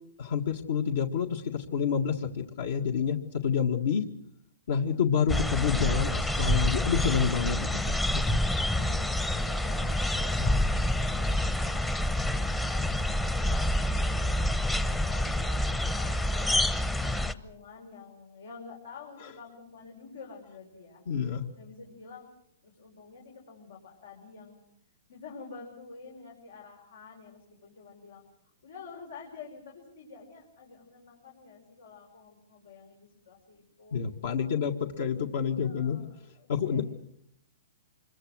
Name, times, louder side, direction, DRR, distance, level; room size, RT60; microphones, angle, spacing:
voice 1, 0.2-3.2 3.4-4.0 4.7-8.4 10.4-10.5 21.1-21.5 33.9-36.0 36.5-36.8, left 7 dB, 70° left, 4 dB, 1.8 m, -28 dB
sound 1, 5.3-17.3, left 1 dB, 10° left, 0.8 m, -27 dB
voice 2, 8.5-11.9 12.3-21.0 21.6-22.3 22.6-24.6 25.1-28.2 28.6-34.0 34.3-34.4 35.6-36.8, left 5 dB, 90° left, 0 dB, 5.2 m, -49 dB
25.5 x 22.5 x 6.4 m, 0.70 s
hypercardioid pair, 150°, 0 cm